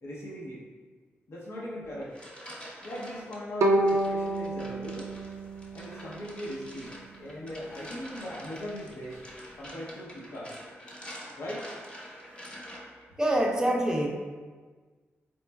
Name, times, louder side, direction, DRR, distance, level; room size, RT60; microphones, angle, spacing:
voice 1, 0.0-0.6 1.3-2.1 2.8-5.1 5.7-9.2 9.5-10.5 11.4-11.7, equal, 70° left, -5 dB, 0.7 m, -39 dB
sound 1, 1.8-3.4 3.9-13.1, equal, 20° left, 0.9 m, -46 dB
Bowed string instrument, 3.6-6.7, right 1 dB, 80° right, 0.4 m, -28 dB
voice 2, 13.2-14.1, right 1 dB, 15° right, 0 dB, 0.5 m, -25 dB
4.2 x 3.0 x 2.2 m, 1.5 s
cardioid pair, 75°, 5 cm